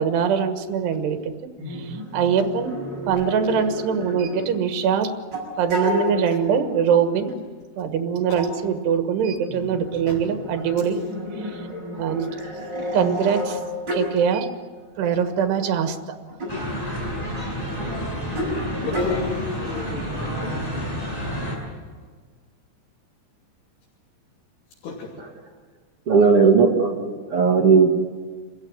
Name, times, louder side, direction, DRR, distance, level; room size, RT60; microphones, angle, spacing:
voice 1, 0.0-1.3 1.7-2.7 3.1-5.1 5.6-7.3 7.8-11.0 11.4-11.6 12.0-12.3 12.9-13.6 13.9-14.5 15.0-16.2, right 7 dB, 85° right, 7 dB, 3.6 m, -23 dB
sound 1, 1.6-4.7 5.3-6.5 7.3-7.4 8.4-8.6 9.5-14.2 15.0-15.2 16.3-16.5 18.3-18.5 18.8-19.1, left 1 dB, 25° right, 8.0 m, -30 dB
sound 2, 16.5-21.6, equal, 10° left, 7.5 m, -29 dB
voice 2, 18.2-18.5 18.8-20.6 24.8-25.1, left 4 dB, 80° left, -3 dB, 5.0 m, -34 dB
voice 3, 26.1-27.9, right 5 dB, 45° right, 2 dB, 2.2 m, -16 dB
28.0 x 15.0 x 9.7 m, 1.5 s
omnidirectional pair, 4.7 m